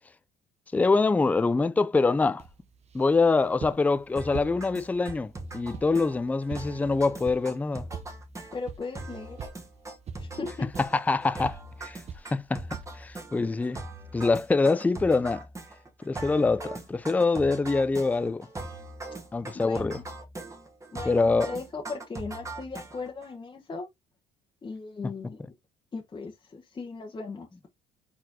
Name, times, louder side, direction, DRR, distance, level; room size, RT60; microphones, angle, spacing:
voice 1, 0.7-2.4 2.9-7.9 10.8-12.0 12.3-13.8 14.1-15.4 16.0-18.5 19.3-20.0 21.1-21.5, left 3 dB, 10° left, 0.4 m, -25 dB
sound 1, 2.4-13.2, right 6 dB, 40° right, 0.8 m, -46 dB
sound 2, 4.2-23.3, right 2 dB, 20° right, 1.5 m, -41 dB
voice 2, 8.5-9.4 10.2-10.7 19.6-20.0 20.9-23.9 24.6-25.5 25.9-27.5, left 4 dB, 25° left, 1.1 m, -37 dB
4.4 x 4.2 x 2.8 m
cardioid pair, 110°, 17 cm